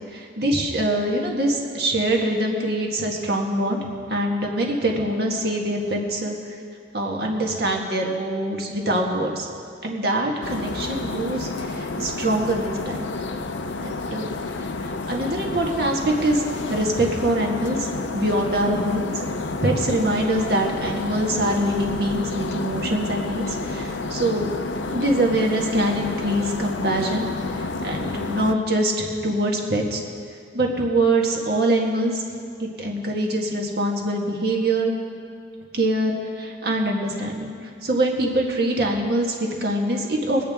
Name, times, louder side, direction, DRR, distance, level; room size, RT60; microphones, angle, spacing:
voice 1, 0.1-6.5 6.9-9.5 9.8-13.1 13.7-14.3 14.8-16.4 16.7-17.9 18.1-19.2 19.6-24.5 24.9-27.3 27.6-30.0 30.5-32.2 32.6-34.9 35.7-37.5 37.8-40.4, right 1 dB, 55° right, 0 dB, 1.7 m, -24 dB
sound 1, 10.4-28.6, left 3 dB, 80° left, 0.6 m, -30 dB
22.0 x 8.7 x 3.7 m, 2.4 s
head